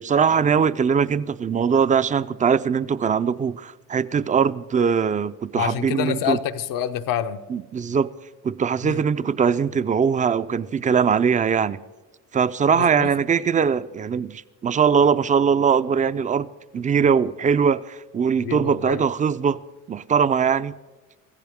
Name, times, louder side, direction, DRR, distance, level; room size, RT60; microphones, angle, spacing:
voice 1, 0.0-6.4 7.5-8.1 8.4-11.8 12.3-16.5 16.7-19.6 19.9-20.7, right 6 dB, 25° right, 0.4 m, -21 dB
voice 2, 5.5-7.4 8.8-9.0 12.7-13.1 18.4-19.1, left 10 dB, 85° left, 0.8 m, -27 dB
24.0 x 15.0 x 3.6 m
cardioid pair, 110°, 33 cm